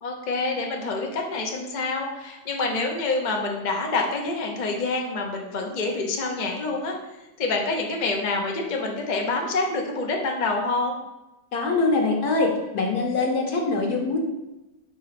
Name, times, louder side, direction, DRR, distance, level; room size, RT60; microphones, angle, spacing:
voice 1, 0.0-7.0 7.4-11.0, left 3 dB, 45° left, 1 dB, 0.6 m, -27 dB
voice 2, 11.5-14.2, left 3 dB, 65° left, 1 dB, 1.5 m, -23 dB
4.8 x 3.9 x 5.8 m, 1.0 s
omnidirectional pair, 1.8 m